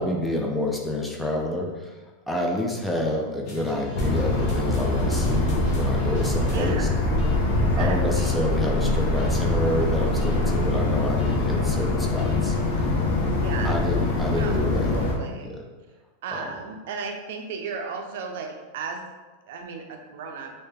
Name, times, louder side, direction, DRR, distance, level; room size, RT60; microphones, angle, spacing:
voice 1, 0.0-2.0 2.3-6.9 7.8-12.6 13.6-14.9 15.4-15.7 16.3-16.5, left 1 dB, 5° left, -1 dB, 0.5 m, -28 dB
sound 1, 3.4-6.7 7.2-7.6 8.2-8.6 9.2-9.6 10.2-10.6 11.2-11.6 12.2-12.6, equal, 45° left, 1.2 m, -43 dB
sound 2, 3.9-15.1, left 2 dB, 70° left, 0.8 m, -23 dB
voice 2, 6.5-6.9 7.6-8.4 13.4-13.8 14.3-14.7 14.9-15.5 16.2-19.0 19.5-20.5, right 5 dB, 70° right, 4 dB, 0.5 m, -35 dB
3.2 x 2.8 x 3.3 m, 1.2 s
supercardioid pair, 125°, 0 cm